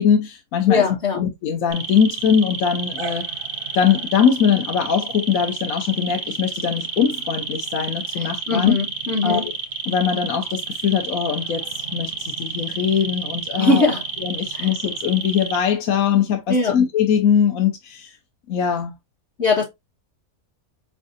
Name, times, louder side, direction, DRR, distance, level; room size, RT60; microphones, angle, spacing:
voice 1, 0.0-0.9 1.2-3.2 3.7-8.7 9.2-9.5 9.9-13.9 14.2-18.1 18.5-18.9, left 8 dB, 70° left, 1.2 m, -21 dB
voice 2, 0.7-1.2 8.2-9.4 13.6-14.0 14.5-14.7 16.5-16.8 19.4-19.6, left 3 dB, 50° left, 1.3 m, -20 dB
sound 1, 1.7-15.6, right 5 dB, 55° right, 0.7 m, -30 dB
4.9 x 3.3 x 2.5 m
omnidirectional pair, 1.6 m